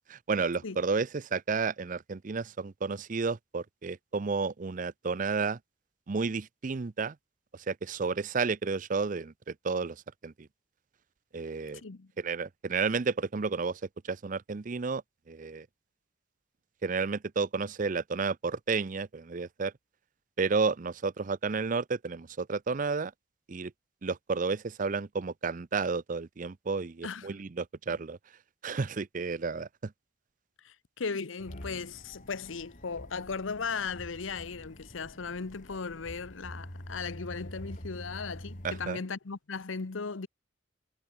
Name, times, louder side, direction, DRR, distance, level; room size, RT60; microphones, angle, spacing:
voice 1, 0.0-5.6 6.1-7.1 7.7-10.0 10.2-10.3 11.3-11.8 12.2-15.0 15.3-15.7 16.8-19.7 20.4-23.1 23.5-23.7 24.0-28.2 28.6-29.9 38.6-39.0, right 4 dB, 40° right, 0.5 m, -31 dB
voice 2, 11.8-12.1 27.0-27.4 30.6-40.3, left 5 dB, 85° left, 0.9 m, -37 dB
sound 1, 31.4-38.9, equal, 40° left, 4.4 m, -46 dB
head